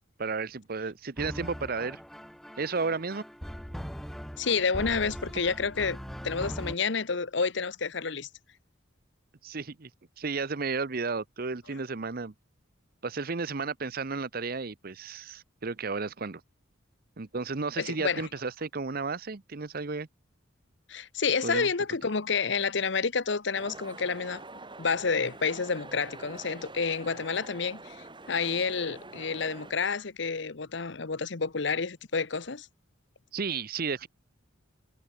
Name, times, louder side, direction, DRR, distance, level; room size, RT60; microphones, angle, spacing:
voice 1, 0.2-2.0 2.6-3.2 9.4-9.9 10.2-12.3 13.0-16.4 17.2-20.1 21.4-21.7 33.3-34.1, right 4 dB, 50° right, 0.8 m, -33 dB
sound 1, 1.2-6.7, equal, ahead, 0.5 m, -40 dB
voice 2, 4.4-6.0 6.2-8.3 17.8-18.3 20.9-24.4 24.8-28.0 28.3-32.7, left 5 dB, 65° left, 1.0 m, -29 dB
Medium Crowd Chatter, 23.5-29.7, right 2 dB, 25° right, 5.1 m, -46 dB
head